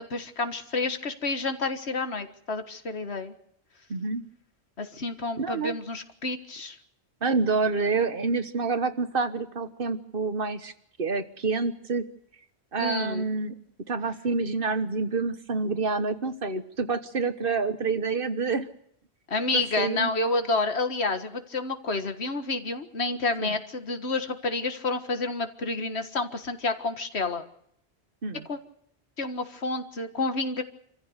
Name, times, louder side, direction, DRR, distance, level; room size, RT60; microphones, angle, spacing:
voice 1, 0.0-3.3 4.8-6.8 12.8-13.3 19.3-27.4 28.5-28.6 29.2-30.6, left 3 dB, 80° left, 8 dB, 1.9 m, -29 dB
voice 2, 3.9-4.2 5.4-5.8 7.2-10.7 11.0-12.0 12.7-13.5 13.9-18.7 19.5-20.1 23.4-23.5 28.2-28.4, right 4 dB, 55° right, 10 dB, 1.5 m, -28 dB
26.5 x 15.0 x 8.0 m, 0.71 s
omnidirectional pair, 1.1 m